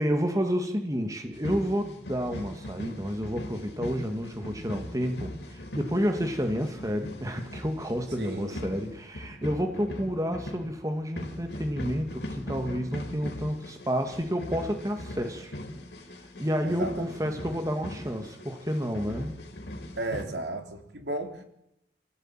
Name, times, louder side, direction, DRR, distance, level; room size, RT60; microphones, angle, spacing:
voice 1, 0.0-15.5 16.4-19.4, equal, 20° right, 5 dB, 2.2 m, -30 dB
sound 1, 1.3-20.2, left 1 dB, 70° left, 4.0 m, -40 dB
voice 2, 8.2-8.7 16.6-17.1 20.0-21.4, right 2 dB, 75° right, 4 dB, 3.7 m, -34 dB
28.0 x 16.5 x 9.1 m, 0.81 s
head